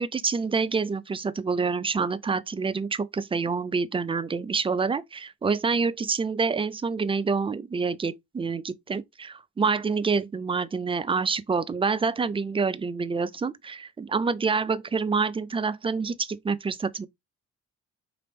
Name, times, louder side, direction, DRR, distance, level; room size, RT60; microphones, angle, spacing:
voice 1, 0.0-17.1, right 4 dB, 20° right, 0.4 m, -27 dB
4.2 x 2.9 x 3.4 m
cardioid pair, 90°, 30 cm